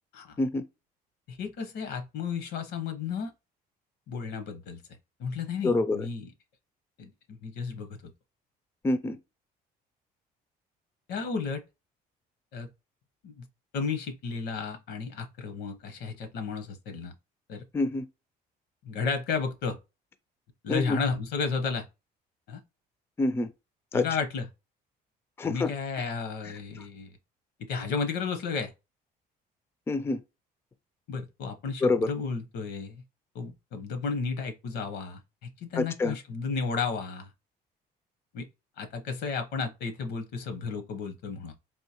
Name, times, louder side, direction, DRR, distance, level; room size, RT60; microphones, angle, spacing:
voice 1, 1.3-3.3 4.1-4.8 5.2-6.3 7.0-8.1 11.1-11.6 12.5-12.7 13.2-13.5 13.7-17.1 17.5-17.6 18.8-19.8 20.6-21.9 22.5-22.6 23.9-24.5 25.4-27.1 27.7-28.7 31.1-33.0 33.3-37.3 38.3-38.5 38.8-41.5, left 5 dB, 75° left, 0.8 m, -33 dB
voice 2, 5.6-6.0 8.8-9.2 17.7-18.0 20.7-21.0 23.2-23.5 23.9-24.0 25.4-25.7 29.9-30.2 31.8-32.1 35.8-36.2, left 3 dB, 15° left, 0.3 m, -26 dB
3.6 x 2.6 x 2.8 m
cardioid pair, 110°, 17 cm